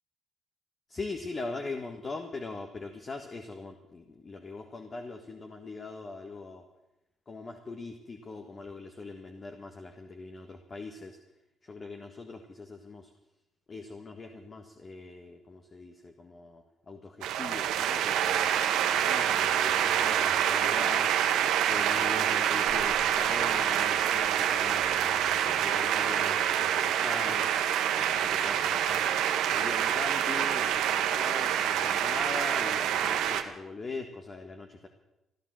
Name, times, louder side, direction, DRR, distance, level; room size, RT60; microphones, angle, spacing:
voice 1, 0.9-6.6 7.3-11.2 11.6-13.1 13.7-18.5 18.8-21.1 21.7-27.5 28.0-29.1 29.5-34.9, left 3 dB, 35° left, 4 dB, 1.6 m, -41 dB
sound 1, 17.2-33.4, right 10 dB, 90° right, 1.3 m, -27 dB
15.5 x 11.0 x 7.6 m, 0.93 s
cardioid pair, 90°, 0 cm